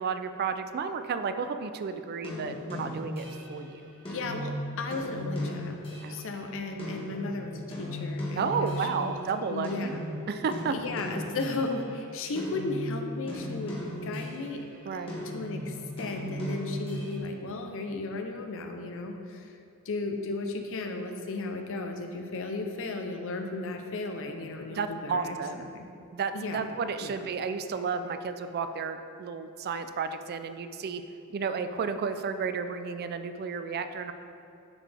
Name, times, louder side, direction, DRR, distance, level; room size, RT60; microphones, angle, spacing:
voice 1, 0.0-3.9 6.0-6.2 8.4-9.9 10.3-10.8 14.9-15.1 24.7-25.7 26.1-31.0 31.3-34.1, right 5 dB, 45° right, 9 dB, 0.3 m, -32 dB
sound 1, 2.2-9.4 9.6-12.0 12.4-14.6 15.1-17.2, equal, 25° left, 1.3 m, -37 dB
voice 2, 4.1-5.8 6.1-9.2 9.5-10.0 10.7-14.7 14.9-15.0 15.3-19.6 19.9-25.4 25.7-25.9 26.3-26.7 27.0-27.1, left 3 dB, 65° left, 4 dB, 0.6 m, -35 dB
10.5 x 4.1 x 3.4 m, 2.6 s
head